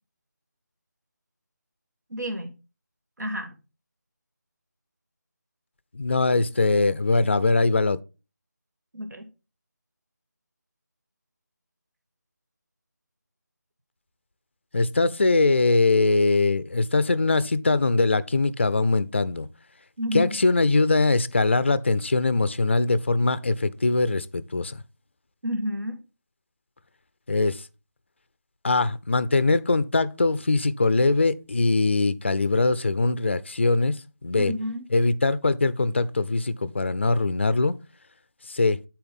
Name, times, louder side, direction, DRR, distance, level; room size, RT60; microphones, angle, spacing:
voice 1, 2.1-2.5 3.2-3.6 8.9-9.3 20.0-20.4 25.4-26.0 34.4-34.8, equal, 75° right, 1.6 m, -30 dB
voice 2, 5.9-8.0 14.7-19.5 20.1-24.8 27.3-27.7 28.6-34.5 34.9-37.7 38.5-38.8, left 3 dB, 40° left, 0.4 m, -22 dB
9.7 x 4.4 x 3.5 m
figure-of-eight pair, 175°, 10 cm